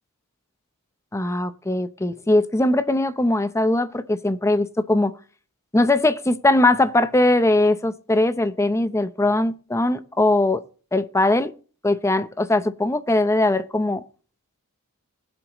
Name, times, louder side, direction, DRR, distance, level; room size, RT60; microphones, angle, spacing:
voice 1, 1.1-5.1 5.7-10.6 10.9-11.5 11.8-14.0, left 2 dB, 15° left, 0.7 m, -20 dB
20.5 x 7.9 x 3.0 m
head